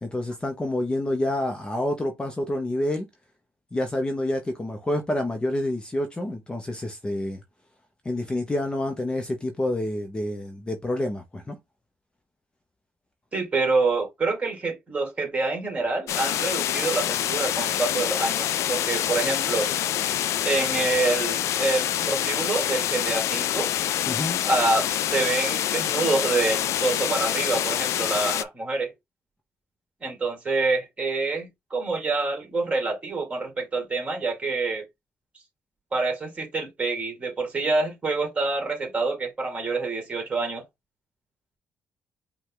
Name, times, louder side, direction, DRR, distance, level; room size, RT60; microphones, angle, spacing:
voice 1, 0.0-3.1 3.7-7.4 8.0-11.6 24.1-24.4, left 1 dB, 20° left, 0.8 m, -28 dB
voice 2, 13.3-19.7 20.4-23.7 24.4-24.8 25.1-28.9 30.0-34.8 35.9-40.6, right 3 dB, 25° right, 2.2 m, -26 dB
sound 1, 16.1-28.4, left 11 dB, 75° left, 0.4 m, -26 dB
5.2 x 2.4 x 3.8 m
cardioid pair, 105°, 5 cm